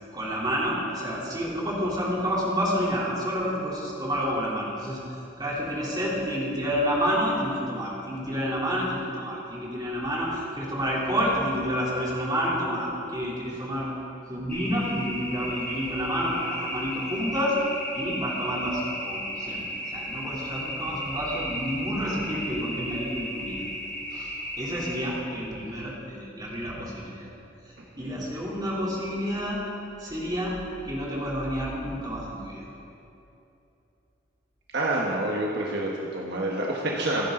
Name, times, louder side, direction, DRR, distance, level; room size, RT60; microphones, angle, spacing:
voice 1, 0.1-5.0 5.4-13.9 14.3-17.6 17.9-19.6 19.9-23.7 24.1-24.3 24.6-27.3 27.6-29.6 30.0-30.6 30.8-32.6, equal, 20° right, -6 dB, 3.6 m, -29 dB
sound 1, 14.5-25.1, equal, 10° left, 4.0 m, -35 dB
voice 2, 34.7-37.3, right 1 dB, 60° right, -2 dB, 1.6 m, -28 dB
27.5 x 10.0 x 4.0 m, 2.8 s
head